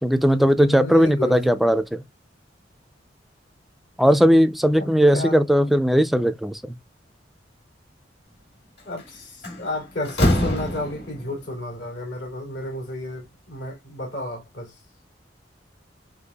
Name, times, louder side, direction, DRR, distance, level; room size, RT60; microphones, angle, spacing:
voice 1, 0.0-1.8 4.0-6.8, equal, ahead, 0.3 m, -18 dB
voice 2, 0.6-1.6 4.8-5.4 8.8-14.8, left 1 dB, 80° left, 2.6 m, -32 dB
Slam, 8.8-9.0 9.4-11.3, equal, 65° left, 2.1 m, -24 dB
5.5 x 3.3 x 2.2 m
head